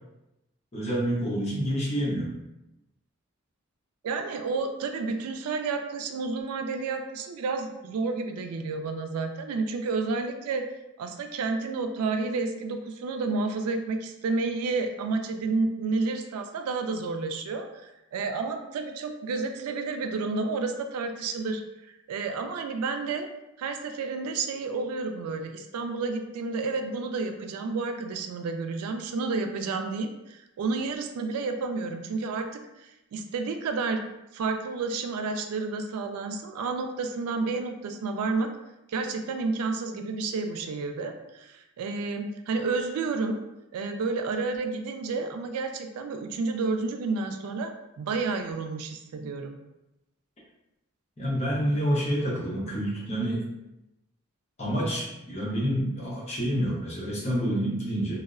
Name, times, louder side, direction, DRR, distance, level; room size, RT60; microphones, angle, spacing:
voice 1, 0.7-2.3 51.2-53.4 54.6-58.1, equal, 30° left, -5 dB, 0.6 m, -28 dB
voice 2, 4.0-10.6 11.0-23.3 23.6-32.6 33.1-34.0 34.3-38.5 38.9-43.4 43.7-47.7 48.0-49.6, right 4 dB, 90° right, 6 dB, 0.3 m, -30 dB
2.6 x 2.0 x 2.4 m, 0.92 s
head